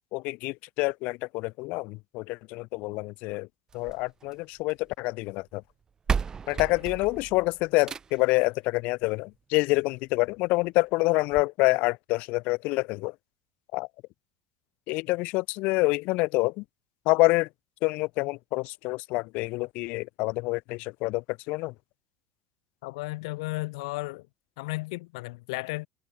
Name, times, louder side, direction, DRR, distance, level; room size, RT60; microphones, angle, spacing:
voice 1, 0.1-3.5 3.7-5.6 6.5-13.1 13.7-13.9 14.9-16.6 17.0-17.5 17.8-21.7, left 23 dB, 65° left, 3.0 m, -27 dB
sound 1, 3.7-4.9 5.7-5.8 6.1-8.4 9.7-9.8 10.3-10.4 10.6-10.7 11.3-11.4, right 6 dB, 25° right, 1.9 m, -33 dB
voice 2, 22.8-24.3 24.6-25.9, left 23 dB, 85° left, 4.4 m, -34 dB
supercardioid pair, 125°, 3 cm